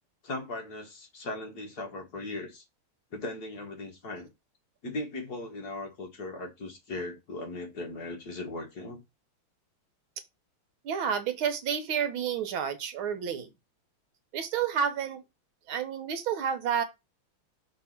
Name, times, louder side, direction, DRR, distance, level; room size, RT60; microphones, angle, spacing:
voice 1, 0.2-2.6 3.1-4.3 4.8-9.0, left 2 dB, 50° left, 1.9 m, -38 dB
voice 2, 10.8-13.5 14.3-15.2 15.7-16.8, right 7 dB, 75° right, 1.7 m, -30 dB
6.1 x 3.4 x 5.8 m
omnidirectional pair, 2.4 m